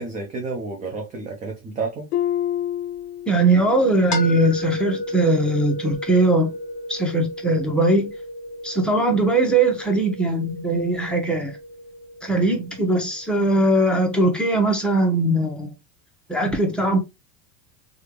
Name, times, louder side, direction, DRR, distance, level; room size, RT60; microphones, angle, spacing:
voice 1, 0.0-2.1, right 3 dB, 20° right, 0.3 m, -30 dB
Harp, 2.1-3.9 4.2-4.6 5.2-5.3, left 11 dB, 65° left, 0.5 m, -28 dB
voice 2, 3.3-6.5 6.9-8.1 8.6-11.5 12.2-15.7 16.3-17.0, right 2 dB, ahead, 0.8 m, -20 dB
sound 1, 4.1-14.0, left 1 dB, 35° left, 1.3 m, -34 dB
3.2 x 2.5 x 3.0 m
supercardioid pair, 110°, 50 cm